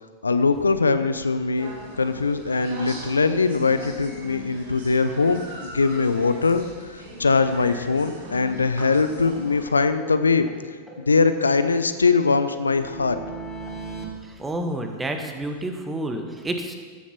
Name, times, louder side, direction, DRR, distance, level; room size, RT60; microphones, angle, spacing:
voice 1, 0.2-10.5 11.0-13.2, left 4 dB, 85° left, 10 dB, 0.6 m, -22 dB
sound 1, 1.5-9.6, right 1 dB, 65° right, 3.2 m, -40 dB
sound 2, 8.1-8.2 8.5-8.6 8.9-9.0 9.3-10.6 10.9-14.1, right 2 dB, 10° left, 2.7 m, -40 dB
voice 2, 14.2-16.8, right 1 dB, 15° right, 5 dB, 1.5 m, -29 dB
14.5 x 7.3 x 5.9 m, 1.5 s
figure-of-eight pair, 90°, 0 cm